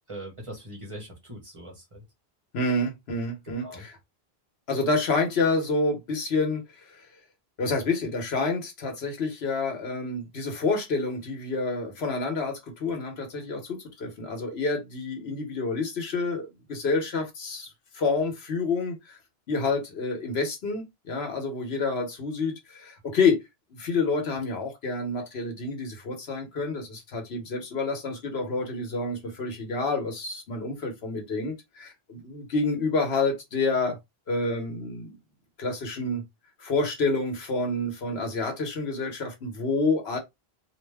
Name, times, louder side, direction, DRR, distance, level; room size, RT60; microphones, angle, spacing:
voice 1, 0.1-2.0 3.6-3.8, right 1 dB, 30° right, 1.1 m, -41 dB
voice 2, 2.5-4.0 4.7-6.6 6.9-7.0 7.6-17.7 17.9-19.1 19.5-23.4 23.7-34.0 34.3-35.1 35.6-36.2 36.6-40.2, left 3 dB, 75° left, 1.2 m, -28 dB
2.8 x 2.1 x 3.3 m
omnidirectional pair, 1.1 m